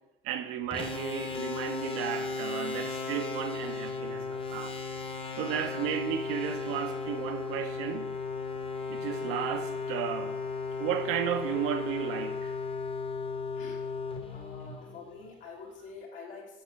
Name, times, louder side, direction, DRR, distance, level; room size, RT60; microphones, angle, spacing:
voice 1, 0.2-4.8 5.4-8.1 8.9-10.4 10.8-12.6, right 9 dB, 45° right, 0.6 m, -34 dB
sound 1, 0.7-15.3, left 4 dB, 20° left, 0.8 m, -35 dB
voice 2, 14.3-16.6, left 4 dB, 65° left, 1.6 m, -46 dB
6.4 x 5.7 x 3.5 m
figure-of-eight pair, 60°, 30 cm